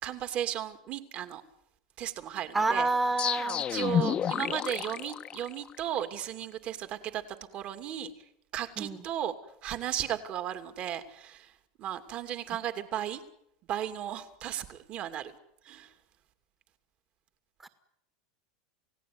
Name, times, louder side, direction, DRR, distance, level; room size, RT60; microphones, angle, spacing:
voice 1, 0.0-1.4 2.0-2.9 3.7-7.2 7.5-8.1 8.5-9.3 9.6-11.5 11.8-13.2 13.7-15.3 15.6-15.9, right 11 dB, 40° right, 9 dB, 2.7 m, -35 dB
voice 2, 2.5-3.7 8.8-9.0 17.6-17.7, right 3 dB, 15° right, 8 dB, 1.9 m, -28 dB
sound 1, 3.2-6.0, left 9 dB, 30° left, 1.2 m, -30 dB
29.0 x 17.5 x 9.6 m, 0.78 s
supercardioid pair, 140°, 3 cm